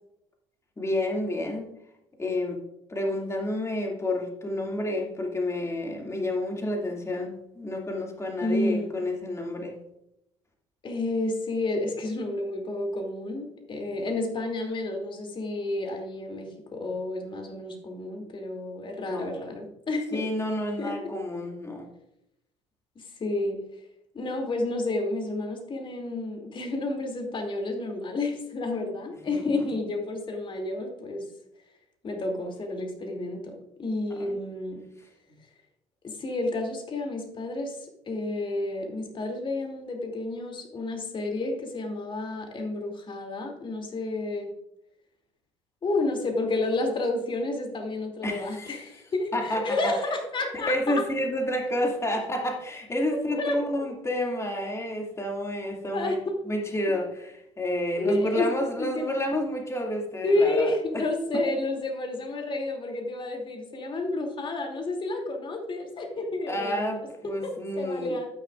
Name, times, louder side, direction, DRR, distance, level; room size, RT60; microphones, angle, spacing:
voice 1, 0.8-1.7 2.2-2.6 2.9-9.8 19.0-19.6 20.1-21.9 29.3-29.7 34.2-34.4 48.2-48.8 49.3-49.9 50.7-56.2 56.5-60.7 66.5-68.1, left 1 dB, 20° left, 1 dB, 2.4 m, -30 dB
voice 2, 8.4-9.0 10.8-20.2 20.8-21.1 23.0-23.6 24.1-31.2 32.0-33.5 33.8-34.8 36.0-44.5 45.8-51.0 53.3-53.6 55.9-56.4 58.0-58.5 58.8-59.1 60.2-67.0 67.2-68.3, left 2 dB, 35° left, 2 dB, 2.8 m, -30 dB
12.5 x 9.4 x 2.5 m, 0.80 s
figure-of-eight pair, 55°, 15 cm